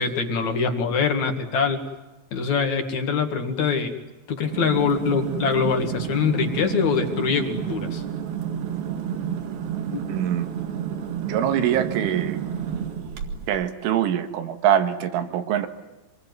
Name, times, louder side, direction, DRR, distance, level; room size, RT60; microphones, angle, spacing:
voice 1, 0.0-1.8 2.3-4.0 4.3-8.0 9.9-10.0, left 5 dB, 50° left, 6 dB, 2.6 m, -24 dB
sound 1, 4.4-13.6, right 8 dB, 55° right, 3.4 m, -30 dB
voice 2, 10.1-10.5 11.2-12.4 13.5-15.7, right 10 dB, 85° right, 8 dB, 4.0 m, -23 dB
26.0 x 21.5 x 9.5 m, 1.1 s
omnidirectional pair, 5.5 m